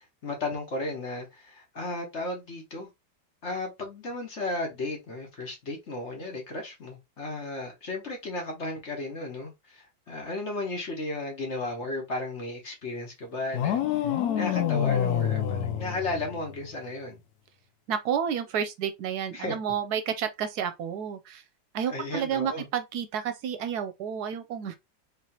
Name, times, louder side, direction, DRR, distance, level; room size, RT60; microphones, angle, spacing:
voice 1, 0.0-2.9 3.4-17.2 19.3-19.5 21.9-22.7, left 2 dB, 45° left, 1.2 m, -34 dB
sound 1, 13.5-16.7, left 10 dB, 70° left, 1.0 m, -27 dB
voice 2, 17.9-21.4 21.7-24.8, right 8 dB, 75° right, 1.1 m, -30 dB
3.9 x 3.1 x 2.8 m
omnidirectional pair, 1.8 m